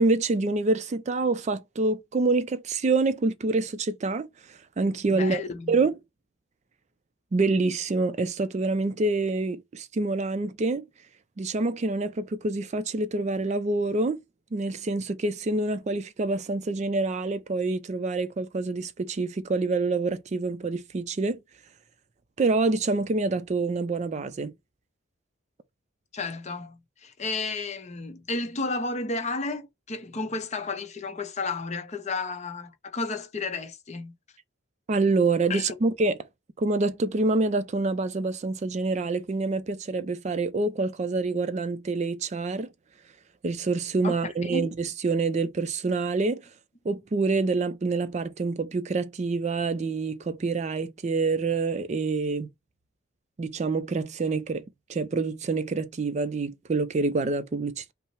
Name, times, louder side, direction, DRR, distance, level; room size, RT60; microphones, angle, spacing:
voice 1, 0.0-5.4 5.7-5.9 7.3-10.8 11.4-14.2 14.5-21.4 22.4-24.5 34.9-36.2 36.6-42.7 43.4-46.4 46.8-52.5 53.4-54.6 54.9-57.9, right 3 dB, 35° right, 0.4 m, -26 dB
voice 2, 5.1-5.7 26.1-34.2 35.5-35.7 44.0-44.2 44.4-44.7, left 3 dB, 35° left, 0.6 m, -32 dB
5.5 x 2.0 x 4.5 m
head